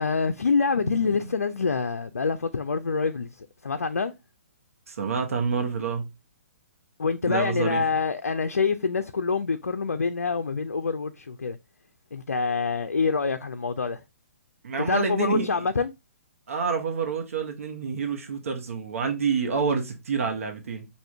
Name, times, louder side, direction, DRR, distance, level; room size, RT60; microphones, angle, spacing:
voice 1, 0.0-4.1 7.0-11.6 12.1-14.0 14.9-15.9, left 5 dB, 85° left, 0.4 m, -26 dB
voice 2, 0.8-1.3 4.9-6.1 7.2-7.8 14.6-15.6 16.5-20.9, right 5 dB, 65° right, 1.0 m, -28 dB
4.9 x 2.5 x 3.3 m
figure-of-eight pair, 130°, 8 cm